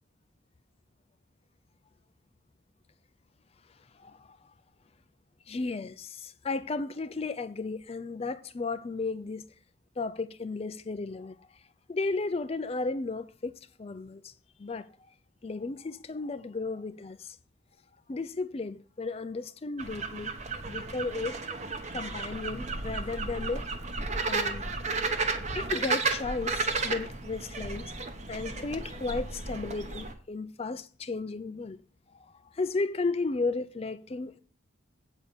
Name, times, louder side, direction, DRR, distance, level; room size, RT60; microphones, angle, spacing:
voice 1, 3.9-4.3 5.5-9.5 10.0-11.6 11.9-14.3 14.6-14.9 15.4-17.4 18.1-20.3 20.7-21.4 21.9-23.7 24.2-24.7 25.5-27.9 28.3-31.8 32.1-34.4, left 3 dB, 30° left, 0.4 m, -34 dB
sound 1, 19.8-30.1, right 3 dB, 35° right, 0.9 m, -33 dB
8.5 x 5.0 x 6.8 m
head